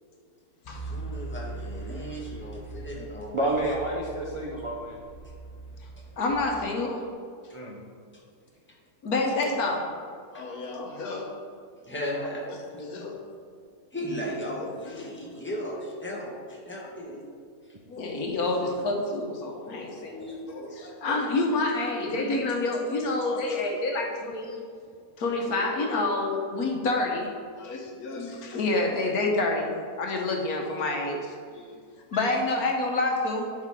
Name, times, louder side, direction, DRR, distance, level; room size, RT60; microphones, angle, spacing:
sound 1, 0.6-6.6, right 3 dB, 85° left, 0.3 m, -40 dB
voice 1, 0.7-3.6 8.7-8.8 10.3-10.4 11.8-13.0 13.9-17.2 19.7-20.5, equal, 10° left, -4 dB, 1.3 m, -36 dB
voice 2, 3.3-5.0 7.5-7.8 32.1-32.2, right 1 dB, 35° right, -3 dB, 0.5 m, -29 dB
voice 3, 6.2-7.0 9.0-9.9 10.3-11.3 12.7-13.2 17.9-24.6 25.2-31.7 32.1-33.5, left 2 dB, 70° left, 1 dB, 1.4 m, -28 dB
11.0 x 4.9 x 3.6 m, 2.2 s
omnidirectional pair, 1.7 m